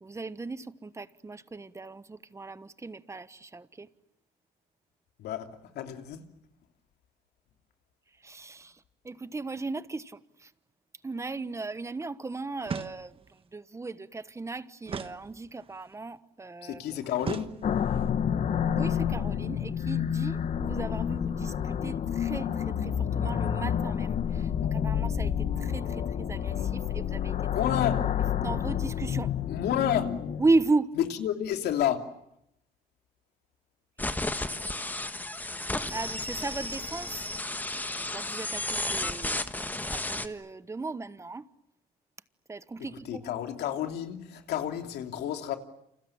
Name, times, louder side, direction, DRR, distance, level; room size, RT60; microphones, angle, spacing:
voice 1, 0.0-3.9 8.2-8.7 9.0-10.2 11.0-13.1 13.5-16.8 18.7-24.1 24.7-25.3 25.6-27.3 28.4-29.3 30.4-31.0 35.9-37.2 37.7-39.4 39.9-41.4 42.5-43.2, right 3 dB, 15° right, 1.2 m, -35 dB
voice 2, 5.7-6.3 16.6-17.5 27.5-28.0 29.5-30.1 30.9-32.1 42.8-45.6, left 10 dB, 75° left, 3.0 m, -30 dB
sound 1, 12.6-13.4 14.9-15.8 17.2-18.1, right 6 dB, 35° right, 1.2 m, -38 dB
sound 2, 17.6-30.7, left 8 dB, 50° left, 1.6 m, -29 dB
sound 3, 34.0-40.3, left 2 dB, 10° left, 1.5 m, -33 dB
29.5 x 27.5 x 7.3 m
cardioid pair, 110°, 17 cm